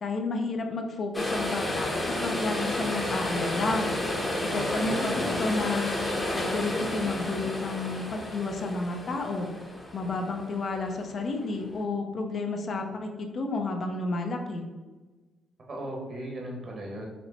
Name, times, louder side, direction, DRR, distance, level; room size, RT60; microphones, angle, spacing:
voice 1, 0.0-6.0 6.3-9.5 9.9-14.6, left 3 dB, 50° left, 3 dB, 0.5 m, -31 dB
sound 1, 1.1-11.5 11.8-11.9, left 1 dB, 20° left, 0.8 m, -31 dB
voice 2, 4.5-5.4 15.7-17.1, right 1 dB, 45° right, -1 dB, 1.1 m, -36 dB
4.4 x 2.1 x 4.0 m, 1.2 s
cardioid pair, 90°, 0 cm